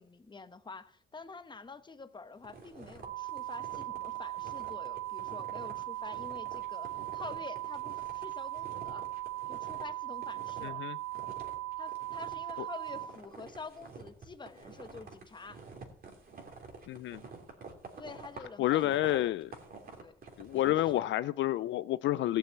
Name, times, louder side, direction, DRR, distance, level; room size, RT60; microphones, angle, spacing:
voice 1, 0.0-9.1 9.5-10.8 11.8-15.6 18.0-19.4 20.0-20.1 20.5-21.1, left 4 dB, 25° left, 1.0 m, -48 dB
sound 1, 2.4-9.9 10.1-10.8 11.1-21.0, right 4 dB, 50° right, 2.9 m, -49 dB
sound 2, 3.0-13.0, right 17 dB, 85° right, 3.5 m, -39 dB
voice 2, 10.6-11.0 16.9-17.2 18.6-19.5 20.4-22.4, left 14 dB, 70° left, 0.4 m, -29 dB
15.0 x 6.9 x 7.9 m
cardioid pair, 90°, 20 cm